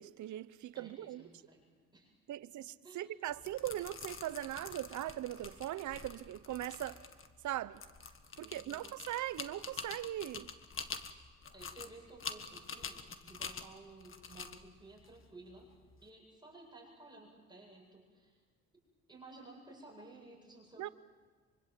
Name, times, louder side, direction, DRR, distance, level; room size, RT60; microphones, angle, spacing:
voice 1, 0.0-1.2 2.3-7.0 7.4-7.8 8.4-10.5 20.8-20.9, right 13 dB, 75° right, 0.9 m, -40 dB
voice 2, 0.7-2.1 2.8-3.1 8.4-8.9 11.5-15.7 16.0-18.4 19.1-20.9, right 2 dB, 15° right, 8.0 m, -55 dB
sound 1, 3.3-16.0, left 5 dB, 45° left, 1.6 m, -47 dB
24.5 x 24.5 x 7.7 m
cardioid pair, 90°, 30 cm